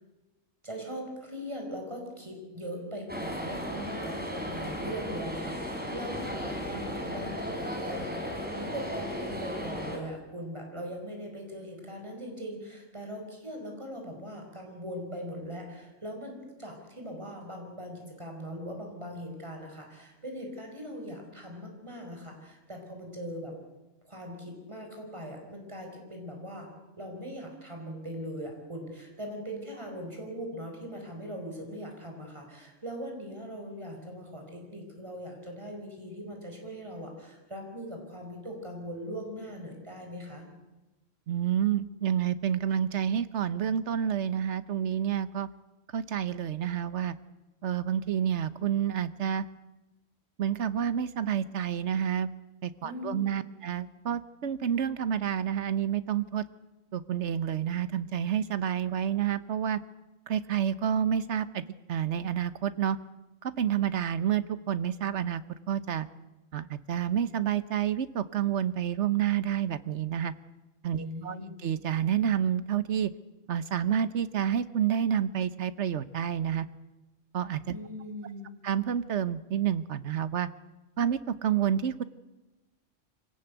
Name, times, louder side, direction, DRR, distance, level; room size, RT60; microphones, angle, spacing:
voice 1, 0.6-8.1 8.6-23.5 24.0-26.7 27.0-40.4 52.8-53.5 71.0-71.5 77.7-78.5, equal, 20° right, 2 dB, 5.0 m, -40 dB
sound 1, 3.1-10.0, equal, 5° right, 4.2 m, -35 dB
voice 2, 41.3-45.5 45.9-47.1 47.6-49.4 50.4-52.3 52.6-56.4 56.9-59.8 60.3-61.6 61.9-63.0 63.4-65.4 65.7-66.1 66.5-70.3 70.8-73.1 73.5-76.7 77.3-77.6 78.6-80.5 81.0-82.0, right 9 dB, 65° right, 14 dB, 1.2 m, -29 dB
25.0 x 18.0 x 8.1 m, 1.1 s
omnidirectional pair, 1.3 m